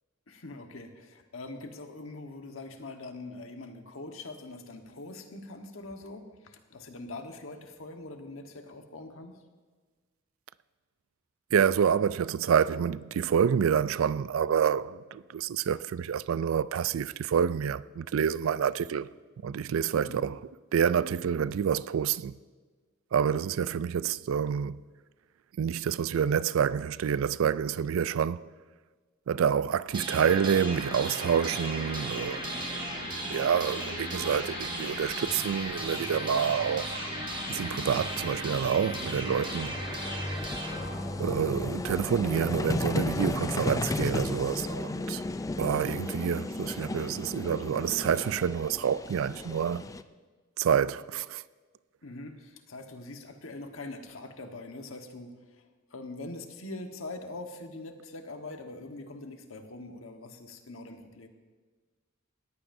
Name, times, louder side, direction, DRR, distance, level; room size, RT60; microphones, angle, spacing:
voice 1, 0.3-9.4 19.9-20.2 52.0-61.3, left 2 dB, 80° left, 1.3 m, -43 dB
voice 2, 11.5-19.1 19.4-20.4 20.7-22.3 23.1-24.8 25.6-28.4 29.3-32.5 33.2-37.1 37.5-40.2 41.2-45.2 45.6-49.9 50.6-51.4, right 7 dB, 80° right, 0.4 m, -28 dB
sound 1, 29.8-42.9, left 2 dB, 55° left, 4.8 m, -41 dB
sound 2, 29.9-41.9, right 1 dB, 25° right, 1.5 m, -37 dB
Vehicle, 34.2-34.4 36.4-36.5 36.6-50.0, left 2 dB, 15° left, 0.3 m, -35 dB
19.5 x 14.5 x 2.7 m
head